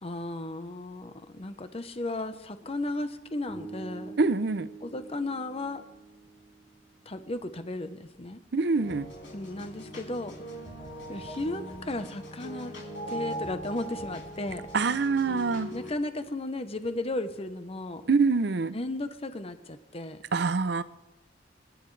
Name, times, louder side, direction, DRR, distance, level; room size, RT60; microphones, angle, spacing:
voice 1, 0.0-4.2 4.8-5.8 7.1-8.4 9.3-10.4 11.1-12.7 13.1-14.7 15.7-18.0 18.7-20.2, left 2 dB, 35° left, 0.9 m, -35 dB
Bass guitar, 3.5-7.6, right 3 dB, ahead, 2.2 m, -45 dB
voice 2, 4.2-4.7 8.5-9.1 14.7-15.7 18.1-18.7 20.3-20.8, right 4 dB, 65° right, 0.6 m, -25 dB
sound 1, 8.8-15.9, right 1 dB, 85° left, 5.2 m, -40 dB
27.0 x 10.5 x 3.3 m
head